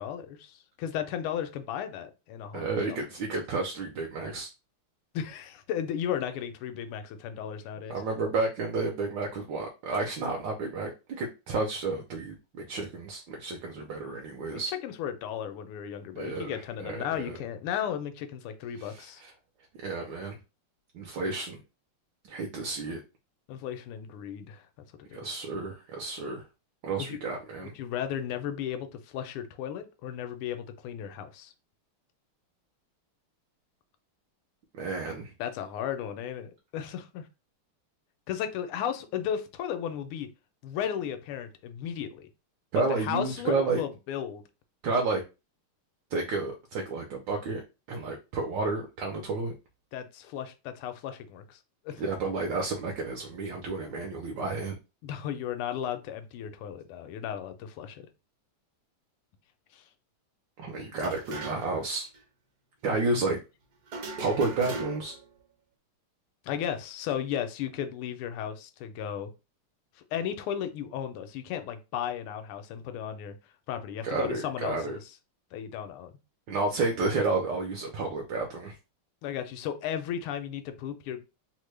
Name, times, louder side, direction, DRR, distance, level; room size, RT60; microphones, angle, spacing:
voice 1, 0.0-3.0 5.1-8.0 14.5-19.2 23.5-24.7 25.1-25.3 27.0-27.2 27.6-31.5 35.4-37.3 38.3-40.3 40.6-42.3 42.9-44.4 49.9-51.6 51.8-52.0 55.0-58.1 59.7-59.8 66.4-69.3 70.1-73.4 73.7-75.0 75.5-76.1 79.2-81.2, left 9 dB, 85° left, 1.5 m, -35 dB
voice 2, 2.5-4.5 7.9-14.7 16.2-17.4 18.8-19.3 19.8-20.4 20.9-21.6 22.2-23.0 25.1-26.4 26.8-27.7 34.7-35.3 42.7-43.8 44.8-45.2 46.1-47.6 47.9-49.5 52.0-54.7 60.6-62.1 62.8-63.4 64.2-65.1 74.0-75.0 76.5-78.8, right 3 dB, 75° right, 1.1 m, -31 dB
sound 1, 61.0-61.9 62.1-62.2 63.9-65.2, right 3 dB, 55° right, 1.1 m, -38 dB
3.5 x 2.1 x 3.1 m
omnidirectional pair, 2.4 m